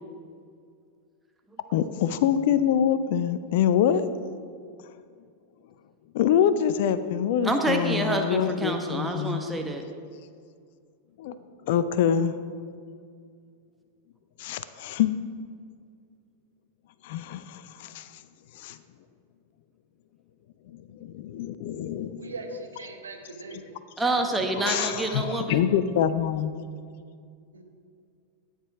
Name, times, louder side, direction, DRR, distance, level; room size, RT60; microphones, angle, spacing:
voice 1, 1.7-4.1 6.1-9.4 11.2-11.4 11.6-12.3 14.4-15.1 17.0-18.2 18.5-18.8 20.7-22.3 24.6-26.5, left 9 dB, 50° left, 13 dB, 0.5 m, -25 dB
voice 2, 7.4-9.8 24.0-25.6, right 2 dB, 10° right, 3 dB, 1.2 m, -27 dB
voice 3, 22.2-23.6 25.4-25.5 27.5-27.6, right 3 dB, 75° right, 4 dB, 1.2 m, -40 dB
14.0 x 8.9 x 3.5 m, 2.2 s
figure-of-eight pair, 90°, 0 cm